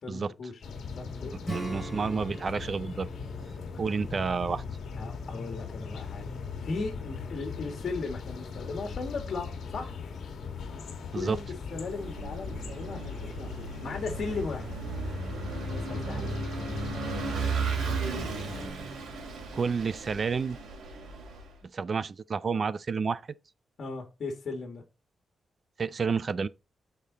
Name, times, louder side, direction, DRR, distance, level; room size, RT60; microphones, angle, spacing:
voice 1, 0.0-0.6 1.0-1.3 5.0-6.3 6.6-10.0 11.1-11.4 11.7-14.7 15.7-17.0 17.9-18.0 23.8-24.8, left 3 dB, 45° left, 1.9 m, -37 dB
sound 1, 0.6-18.7, left 5 dB, 65° left, 1.6 m, -39 dB
voice 2, 1.3-3.1 3.8-4.6 11.1-11.4 19.5-20.6 21.7-23.2 25.8-26.5, right 5 dB, 35° right, 0.4 m, -30 dB
Acoustic guitar / Strum, 1.4-5.7, right 2 dB, 10° right, 3.2 m, -43 dB
Vehicle / Engine, 11.7-21.5, right 5 dB, 85° right, 2.8 m, -36 dB
9.0 x 5.1 x 4.0 m
wide cardioid pair, 165°, 0 cm